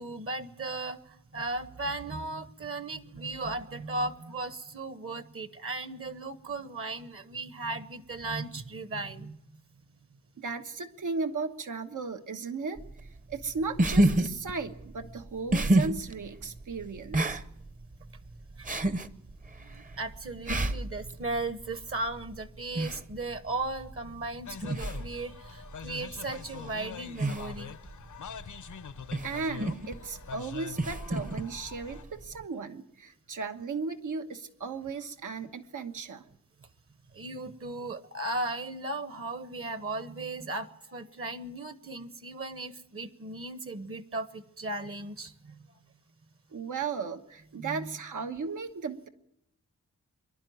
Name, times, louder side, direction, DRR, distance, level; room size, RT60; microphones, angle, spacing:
voice 1, 0.0-9.4 18.6-18.7 19.6-27.7 37.1-45.7 47.6-48.0, right 2 dB, 45° right, 12 dB, 1.1 m, -36 dB
voice 2, 10.4-12.8 13.3-17.4 29.2-36.2 46.5-49.1, right 4 dB, 85° right, 7 dB, 1.4 m, -36 dB
sound 1, 12.8-32.4, right 1 dB, 25° right, 0.8 m, -32 dB
sound 2, 24.5-32.0, left 7 dB, 75° left, 0.8 m, -44 dB
25.0 x 11.5 x 9.4 m, 0.79 s
wide cardioid pair, 140°, 30 cm